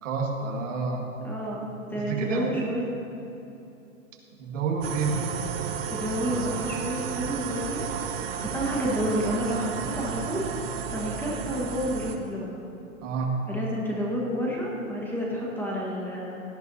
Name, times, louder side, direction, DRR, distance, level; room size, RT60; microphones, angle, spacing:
voice 1, 0.0-1.1 2.0-2.6 4.4-5.2 13.0-13.4, right 4 dB, 60° right, 0 dB, 2.0 m, -29 dB
voice 2, 1.2-2.8 5.9-7.9 8.4-10.5 10.9-12.6 13.5-16.4, equal, 5° left, -4 dB, 1.4 m, -30 dB
sound 1, 4.8-12.2, right 7 dB, 45° right, 0.9 m, -33 dB
17.5 x 10.5 x 2.8 m, 2.9 s
hypercardioid pair, 140°, 42 cm